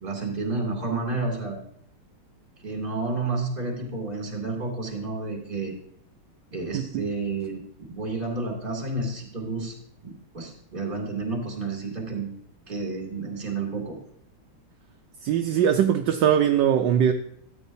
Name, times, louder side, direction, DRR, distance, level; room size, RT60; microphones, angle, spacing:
voice 1, 0.0-1.6 2.6-5.7 6.5-9.8 10.0-12.3 12.7-14.0, right 3 dB, 25° right, 2.6 m, -30 dB
voice 2, 6.7-7.1 15.2-17.1, right 9 dB, 70° right, 1.2 m, -21 dB
14.0 x 8.9 x 2.7 m
omnidirectional pair, 2.3 m